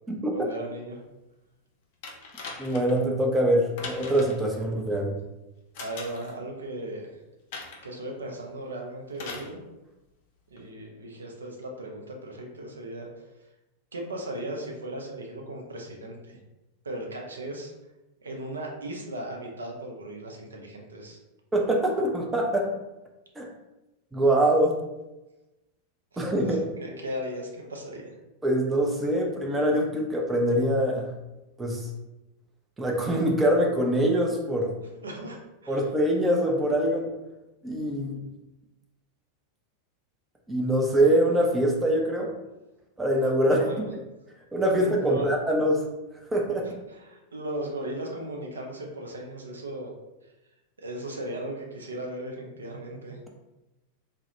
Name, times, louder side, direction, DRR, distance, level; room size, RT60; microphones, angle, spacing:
voice 1, 0.3-1.0 5.8-7.1 7.8-9.6 10.5-13.1 13.9-16.4 16.8-17.7 18.2-21.2 26.1-28.1 35.0-35.4 35.6-35.9 43.5-43.9 44.7-45.3 46.9-49.9 50.8-53.2, right 1 dB, 70° right, 0 dB, 0.4 m, -37 dB
sound 1, 2.0-3.0 3.8-4.5 5.7-6.3 7.5-7.9 9.1-9.5 10.6-10.7, left 4 dB, 50° left, 0.5 m, -40 dB
voice 2, 2.6-5.2 21.5-22.7 23.4-23.5 24.1-24.8 26.2-26.6 28.4-31.1 31.6-31.9 32.8-34.7 35.7-37.1 37.6-38.3 40.5-42.3 43.0-43.7 44.5-45.8 46.3-46.8, right 1 dB, 10° right, 0 dB, 0.4 m, -24 dB
2.3 x 2.0 x 2.8 m, 1.0 s
figure-of-eight pair, 90°, 0 cm